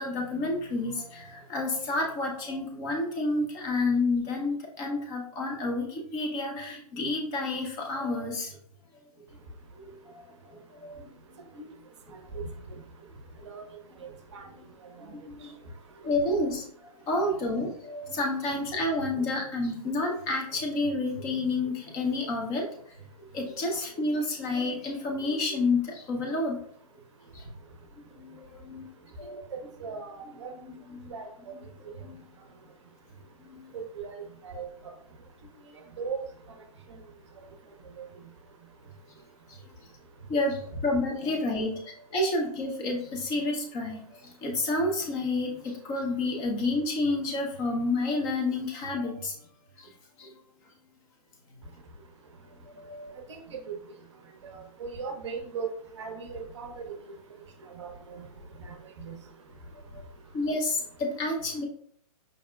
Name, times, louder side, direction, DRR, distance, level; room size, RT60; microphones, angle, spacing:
voice 1, 0.0-8.6 9.8-10.2 10.8-11.0 15.0-15.5 16.0-16.6 17.1-22.7 23.3-26.6 27.3-27.4 28.2-28.8 29.2-29.4 30.6-31.1 32.0-32.2 33.4-33.6 40.3-44.0 44.4-49.3 49.8-49.9 50.2-50.3 52.8-53.1 59.9-60.0 60.3-61.6, left 2 dB, 15° left, 1 dB, 0.5 m, -30 dB
voice 2, 29.5-30.5 31.1-31.3 33.7-34.2 34.4-34.7 36.0-36.2 53.3-53.6 54.4-55.7 56.0-56.8 57.8-57.9 58.6-59.2, right 5 dB, 45° right, 4 dB, 0.6 m, -37 dB
5.0 x 2.1 x 2.2 m, 0.64 s
figure-of-eight pair, 130°, 20 cm